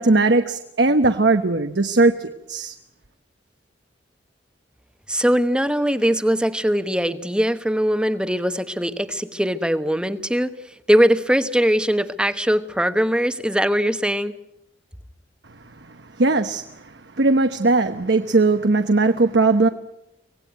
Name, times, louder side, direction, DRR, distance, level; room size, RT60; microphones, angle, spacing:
voice 1, 0.0-2.7 16.2-16.6 17.2-19.7, right 3 dB, 70° right, 7 dB, 1.1 m, -18 dB
voice 2, 5.1-10.5 10.9-14.3, equal, 5° right, 10 dB, 1.1 m, -21 dB
25.0 x 18.5 x 9.4 m, 0.87 s
head